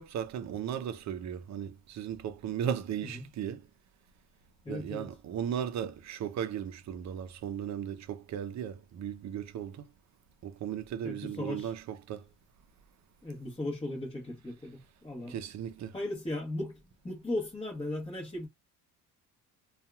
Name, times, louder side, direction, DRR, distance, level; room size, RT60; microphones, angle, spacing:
voice 1, 0.0-3.7 4.7-9.8 10.4-12.3 15.3-15.9, right 9 dB, 40° right, 0.6 m, -36 dB
voice 2, 4.6-5.1 11.0-11.7 13.2-15.4 15.9-18.5, left 1 dB, 15° left, 1.0 m, -37 dB
2.7 x 2.4 x 2.3 m
supercardioid pair, 80°, 41 cm